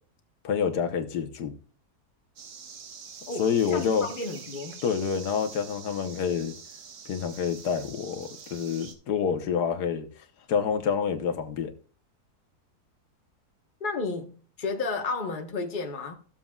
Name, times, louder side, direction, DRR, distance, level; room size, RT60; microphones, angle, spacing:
voice 1, 0.4-1.5 3.4-4.1 4.8-6.5 7.1-10.1 10.5-11.7, left 7 dB, 85° left, 1.6 m, -27 dB
sound 1, 2.4-8.9, right 6 dB, 75° right, 1.8 m, -45 dB
voice 2, 3.3-4.8 13.8-16.1, left 3 dB, 35° left, 1.2 m, -32 dB
14.5 x 7.4 x 2.3 m
omnidirectional pair, 1.7 m